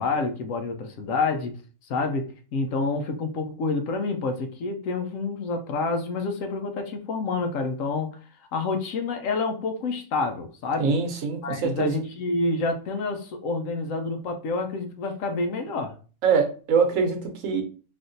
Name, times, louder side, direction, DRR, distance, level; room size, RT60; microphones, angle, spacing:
voice 1, 0.0-1.6 1.9-8.2 8.5-11.0 11.4-16.0, left 3 dB, 75° left, 1.0 m, -28 dB
voice 2, 10.8-11.9 16.2-17.6, right 5 dB, 75° right, 1.1 m, -23 dB
3.5 x 2.5 x 2.5 m
omnidirectional pair, 1.4 m